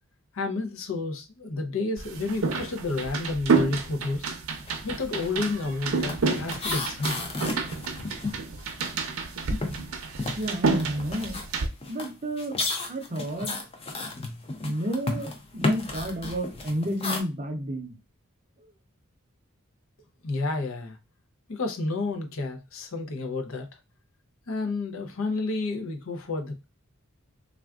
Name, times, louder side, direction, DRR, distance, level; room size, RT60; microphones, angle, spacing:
voice 1, 0.3-4.3 4.8-7.2 8.0-8.1 20.2-21.0 21.5-23.7 24.5-26.7, left 3 dB, 75° left, 0.6 m, -30 dB
sound 1, 2.0-11.7, right 4 dB, 85° right, 0.6 m, -29 dB
sound 2, 4.6-4.8 5.1-9.2 9.5-17.2, left 2 dB, 25° left, 0.5 m, -33 dB
voice 2, 10.4-11.4 11.9-12.6 12.9-13.6 14.6-18.0 18.6-18.7, equal, 35° right, 0.5 m, -31 dB
3.4 x 2.4 x 2.3 m
head